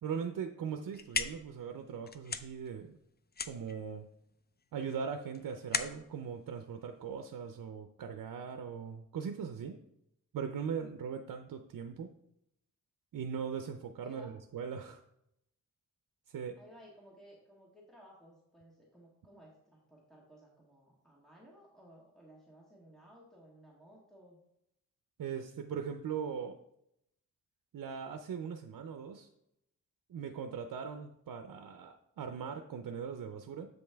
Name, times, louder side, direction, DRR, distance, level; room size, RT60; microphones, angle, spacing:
voice 1, 0.0-3.0 3.5-4.1 4.7-9.8 10.3-12.1 13.1-15.0 16.3-16.6 25.2-26.6 27.7-29.3 30.1-33.7, right 7 dB, 85° right, 6 dB, 0.6 m, -40 dB
sound 1, 0.7-7.6, left 5 dB, 30° left, 0.5 m, -40 dB
voice 2, 14.0-14.3 16.5-24.4, equal, ahead, -5 dB, 1.7 m, -58 dB
7.8 x 5.3 x 3.4 m, 0.78 s
wide cardioid pair, 80°, 33 cm